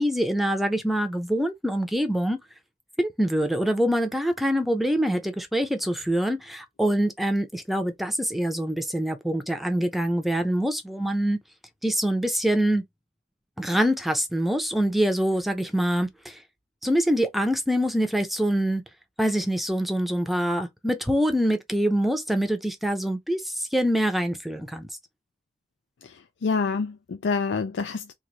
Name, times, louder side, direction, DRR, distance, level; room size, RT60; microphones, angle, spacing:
voice 1, 0.0-2.4 3.0-11.4 11.8-12.8 13.6-16.4 16.8-18.8 19.2-24.9, equal, ahead, 0.6 m, -25 dB
voice 2, 26.4-28.1, left 4 dB, 85° left, 0.4 m, -27 dB
3.1 x 2.6 x 3.9 m
head